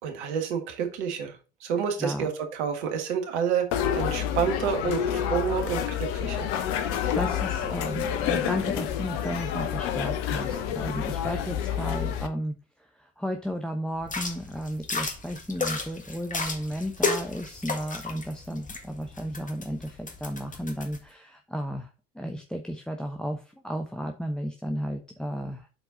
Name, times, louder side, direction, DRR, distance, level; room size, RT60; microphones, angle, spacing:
voice 1, 0.0-3.7 3.9-6.5, right 7 dB, 70° right, 5 dB, 1.7 m, -29 dB
sound 1, 3.7-12.3, left 9 dB, 65° left, 1.0 m, -28 dB
voice 2, 6.9-21.9 22.1-25.7, equal, ahead, 4 dB, 0.9 m, -34 dB
sound 2, 14.0-21.0, left 4 dB, 20° left, 1.8 m, -33 dB
7.8 x 4.5 x 3.8 m, 0.34 s
figure-of-eight pair, 60°, 36 cm